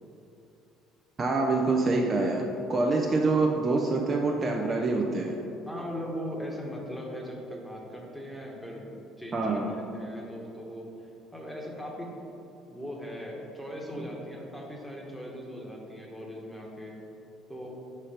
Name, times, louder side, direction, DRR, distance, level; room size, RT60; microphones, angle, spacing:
voice 1, 1.2-5.4 9.3-9.7, right 3 dB, 35° right, 1 dB, 0.5 m, -26 dB
voice 2, 5.7-8.9 9.2-10.9 11.3-12.1 12.7-17.0 17.5-17.7, equal, 5° left, -1 dB, 1.3 m, -39 dB
4.9 x 4.3 x 5.0 m, 2.9 s
hypercardioid pair, 65°, 0 cm